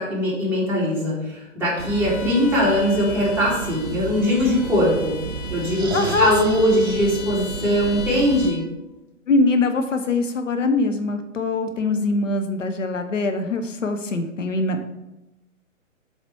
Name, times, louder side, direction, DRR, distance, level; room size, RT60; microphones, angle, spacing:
voice 1, 0.0-5.2 5.5-8.6, equal, 5° right, -7 dB, 2.2 m, -21 dB
Bowed string instrument, 1.7-8.7, left 6 dB, 40° left, 1.0 m, -38 dB
sound 1, 1.8-8.5, right 6 dB, 55° right, 0.5 m, -33 dB
voice 2, 5.9-6.8 9.3-14.8, left 3 dB, 70° left, 6 dB, 0.9 m, -23 dB
7.7 x 4.1 x 4.6 m, 0.96 s
figure-of-eight pair, 125°, 39 cm